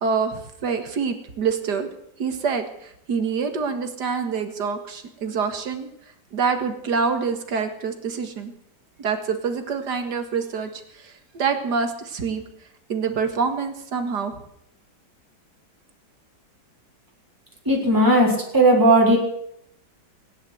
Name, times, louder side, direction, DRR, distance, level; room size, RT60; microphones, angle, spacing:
voice 1, 0.0-1.9 2.2-5.9 6.3-8.5 9.0-12.4 12.9-14.4, right 5 dB, 70° right, 7 dB, 2.3 m, -26 dB
voice 2, 17.6-19.2, right 1 dB, 10° right, -3 dB, 4.5 m, -16 dB
17.0 x 10.0 x 7.9 m, 0.75 s
omnidirectional pair, 1.9 m